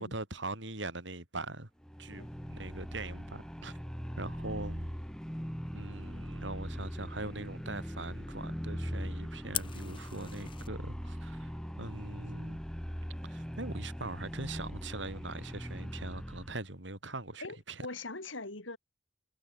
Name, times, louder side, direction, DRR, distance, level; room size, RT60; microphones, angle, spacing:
voice 1, 0.0-1.7 2.0-3.8 4.2-4.9 5.7-12.6 13.2-17.9, right 2 dB, 70° right, 4.7 m, -42 dB
sound 1, 1.8-16.6, equal, 5° left, 3.5 m, -40 dB
Fire, 9.5-10.7, left 9 dB, 25° left, 0.8 m, -39 dB
voice 2, 17.4-18.8, left 3 dB, 85° left, 3.8 m, -42 dB
head